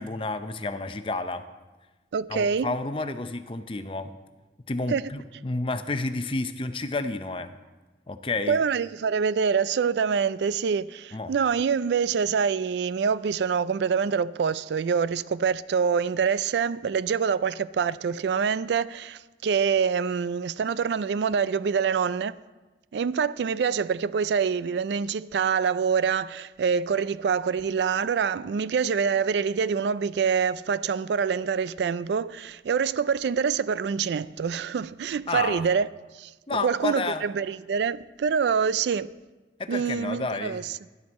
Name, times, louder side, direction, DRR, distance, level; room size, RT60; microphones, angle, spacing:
voice 1, 0.0-1.4 2.3-4.1 4.7-7.5 8.1-8.6 11.1-11.3 35.3-35.7 36.5-37.2 39.6-40.6, left 3 dB, 30° left, 0.6 m, -30 dB
voice 2, 2.1-2.7 4.9-5.0 8.5-22.4 22.9-35.9 36.1-39.1 39.7-40.8, right 6 dB, 75° right, 0.3 m, -25 dB
12.0 x 11.5 x 4.2 m
head